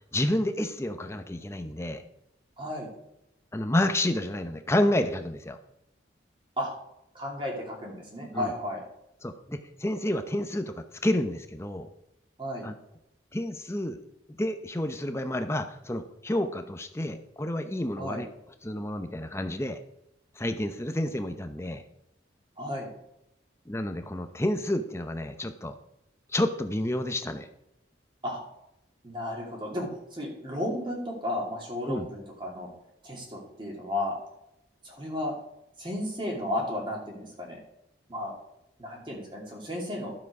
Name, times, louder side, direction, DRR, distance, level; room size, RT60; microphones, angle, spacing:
voice 1, 0.1-2.0 3.5-5.6 8.3-8.5 9.2-11.9 12.6-12.7 13.3-14.0 14.4-18.3 18.6-19.8 20.4-21.8 23.7-25.8 26.3-27.5 31.9-32.1, left 1 dB, 15° left, 7 dB, 0.7 m, -29 dB
voice 2, 2.6-2.9 6.6-6.7 7.1-8.8 12.4-12.7 18.0-18.2 22.6-22.9 28.2-28.4 29.0-32.7 33.0-34.2 34.8-35.3 35.8-37.6 38.1-38.3 38.8-40.1, left 1 dB, 25° right, -1 dB, 2.6 m, -33 dB
12.0 x 7.5 x 4.8 m, 0.81 s
head